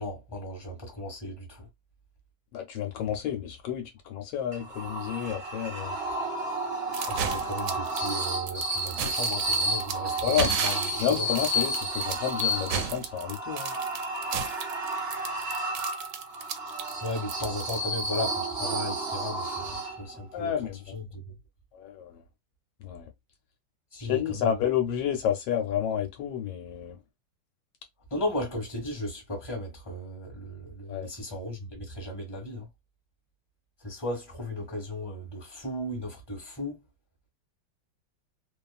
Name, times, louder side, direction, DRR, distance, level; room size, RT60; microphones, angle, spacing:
voice 1, 0.0-1.7 7.1-11.3 17.0-20.5 20.9-21.3 23.9-24.5 28.1-32.7 33.8-36.8, left 1 dB, 15° left, 1.1 m, -35 dB
voice 2, 2.5-5.9 10.2-10.5 11.0-13.7 20.3-20.8 21.7-22.2 22.8-23.1 24.0-27.0 30.9-31.1, left 9 dB, 80° left, 1.2 m, -30 dB
sound 1, 4.5-20.3, right 1 dB, 50° right, 0.8 m, -31 dB
sound 2, 6.9-18.2, right 8 dB, 70° right, 1.0 m, -34 dB
2.8 x 2.3 x 2.3 m
omnidirectional pair, 2.0 m